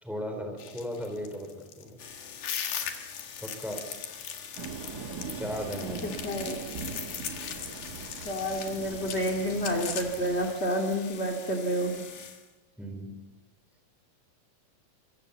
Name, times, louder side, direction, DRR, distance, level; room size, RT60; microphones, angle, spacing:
voice 1, 0.0-2.0 3.4-3.8 5.3-6.2 12.8-13.2, equal, ahead, 4 dB, 4.1 m, -36 dB
sound 1, 0.6-11.1, left 8 dB, 85° left, 3.6 m, -39 dB
sound 2, 2.0-12.5, left 7 dB, 55° left, 2.7 m, -46 dB
sound 3, 4.6-10.5, right 5 dB, 45° right, 1.3 m, -41 dB
voice 2, 6.0-6.6 8.2-12.0, equal, 20° left, 2 dB, 2.1 m, -29 dB
26.0 x 25.0 x 7.2 m, 1.2 s
omnidirectional pair, 3.9 m